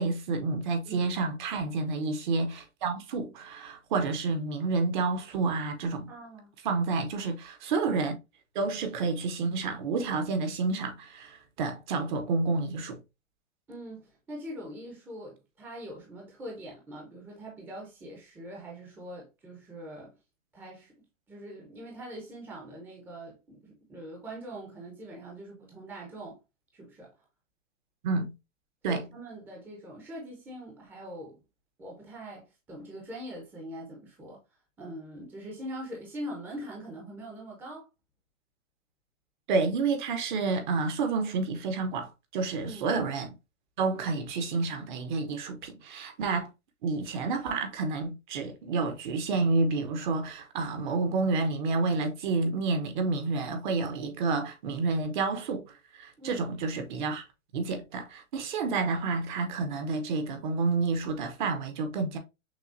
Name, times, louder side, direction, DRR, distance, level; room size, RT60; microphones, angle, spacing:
voice 1, 0.0-6.1 6.6-8.1 8.5-13.0 28.0-28.3 28.8-29.0 39.5-43.3 43.8-46.5 46.8-55.6 55.9-57.2 57.5-62.2, right 4 dB, 40° right, 0.9 m, -29 dB
voice 2, 6.1-6.5 13.7-20.1 20.5-20.9 21.3-26.4 26.7-27.1 28.9-31.4 31.8-34.4 34.8-37.9 42.6-42.9 56.2-56.5, right 1 dB, 5° right, 0.7 m, -43 dB
6.1 x 2.3 x 2.6 m
hypercardioid pair, 145°, 38 cm